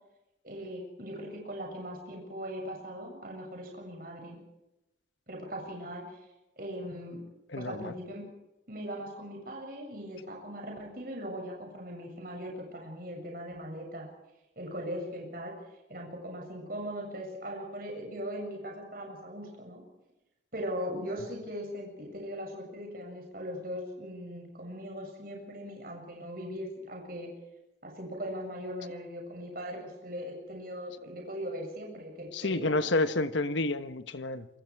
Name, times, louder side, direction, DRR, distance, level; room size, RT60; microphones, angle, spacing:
voice 1, 0.4-4.4 5.3-6.2 6.6-7.2 7.6-8.3 8.7-14.1 14.6-15.6 15.9-19.8 20.5-27.3 27.8-32.9, equal, 50° right, 7.3 m, -39 dB
voice 2, 7.5-7.9 32.3-34.5, left 2 dB, 80° left, 1.3 m, -29 dB
28.0 x 24.0 x 4.8 m
head